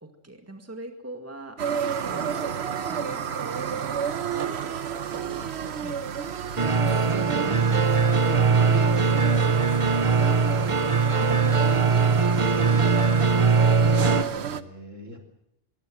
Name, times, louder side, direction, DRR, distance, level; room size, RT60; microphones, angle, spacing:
voice 1, 0.0-1.6 2.1-3.9 5.1-5.6 5.8-6.0 6.8-8.8 9.3-12.8, right 1 dB, 10° right, 5 dB, 2.1 m, -41 dB
sound 1, 1.6-14.6, right 7 dB, 60° right, 1.1 m, -31 dB
sound 2, 6.6-14.2, right 5 dB, 30° right, 0.9 m, -21 dB
voice 2, 13.5-15.2, equal, 75° right, 3 dB, 3.9 m, -42 dB
22.5 x 16.5 x 7.6 m, 0.80 s
omnidirectional pair, 1.3 m